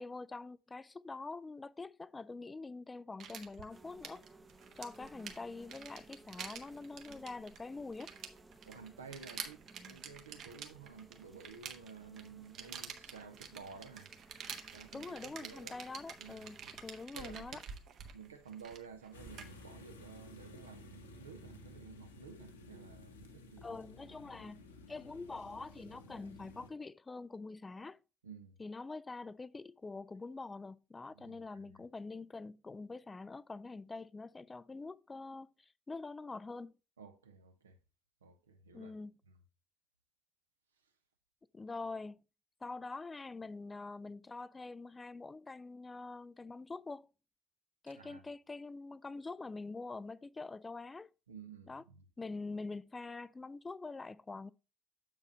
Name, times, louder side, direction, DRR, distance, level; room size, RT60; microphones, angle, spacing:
voice 1, 0.0-4.2 4.7-8.1 14.9-17.6 23.6-28.0 28.6-36.7 38.7-39.1 41.5-42.2 42.6-47.1 47.8-51.1 51.7-51.8 52.2-54.5, left 3 dB, 20° left, 0.3 m, -45 dB
sound 1, 3.2-19.6, right 7 dB, 50° right, 1.0 m, -49 dB
sound 2, 3.7-17.1, right 2 dB, 15° right, 0.7 m, -60 dB
voice 2, 8.7-14.1 14.7-15.8 16.2-16.8 17.1-17.6 18.1-23.8 28.2-28.6 31.1-31.6 37.0-37.8 38.2-38.9 39.3-39.4 47.9-48.2 51.3-52.0, right 6 dB, 80° right, 0.7 m, -53 dB
sound 3, 19.1-26.7, left 2 dB, 80° left, 0.8 m, -54 dB
7.4 x 4.8 x 4.1 m
figure-of-eight pair, 55°, 0 cm